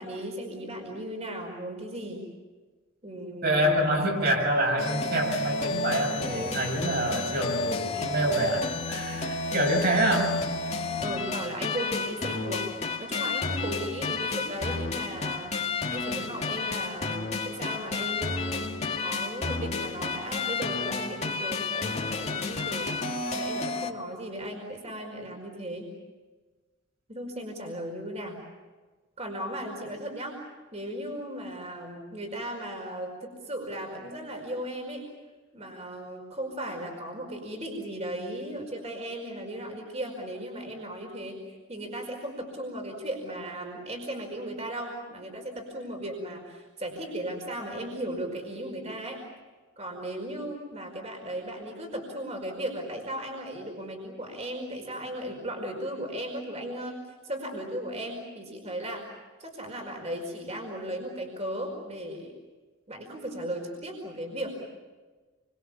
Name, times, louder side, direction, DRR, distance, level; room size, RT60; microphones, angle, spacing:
voice 1, 0.0-2.2 3.0-3.9 11.0-12.7 13.0-15.6 15.9-22.9 23.4-25.9 27.1-28.4 29.2-30.4 30.7-35.1 35.5-41.4 41.7-49.2 49.8-57.0 57.2-59.1 59.4-62.3 62.9-64.6, right 1 dB, 30° right, 2 dB, 5.1 m, -36 dB
voice 2, 3.4-10.4, right 1 dB, 50° right, 1 dB, 7.3 m, -26 dB
sound 1, 4.8-23.9, left 3 dB, 30° left, 2.1 m, -31 dB
29.5 x 25.0 x 7.2 m, 1.3 s
head